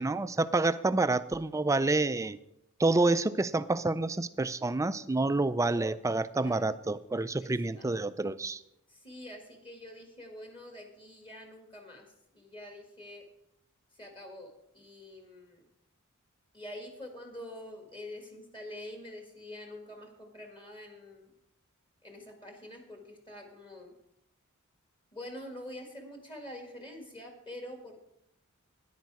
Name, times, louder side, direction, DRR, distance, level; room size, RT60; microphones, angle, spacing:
voice 1, 0.0-2.4 2.8-8.6, right 2 dB, 15° right, 14 dB, 0.4 m, -28 dB
voice 2, 7.4-7.9 8.9-12.1 12.3-13.2 14.0-15.6 16.5-21.3 22.0-23.9 25.1-28.0, left 1 dB, 25° left, 3 dB, 1.8 m, -46 dB
13.5 x 10.5 x 4.8 m, 0.83 s
head